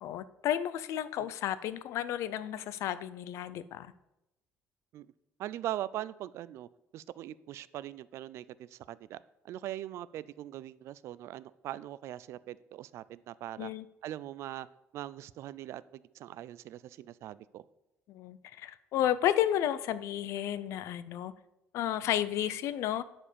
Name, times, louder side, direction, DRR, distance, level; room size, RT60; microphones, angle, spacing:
voice 1, 0.0-3.9 13.6-13.8 18.1-21.3 21.7-23.0, left 11 dB, 70° left, 16 dB, 0.5 m, -32 dB
voice 2, 5.4-13.7 14.0-14.7 14.9-17.6, right 13 dB, 65° right, 18 dB, 0.3 m, -41 dB
10.0 x 4.4 x 6.8 m, 0.90 s
cardioid pair, 150°, 5 cm